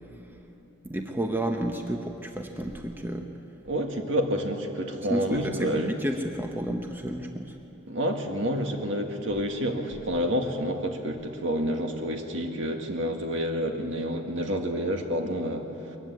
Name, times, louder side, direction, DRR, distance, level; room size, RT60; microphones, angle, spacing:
voice 1, 0.8-3.3 5.1-7.6, right 1 dB, 10° right, 3 dB, 0.9 m, -31 dB
voice 2, 3.7-5.9 7.9-16.0, equal, 70° right, 3 dB, 1.9 m, -29 dB
21.5 x 15.0 x 9.6 m, 3.0 s
head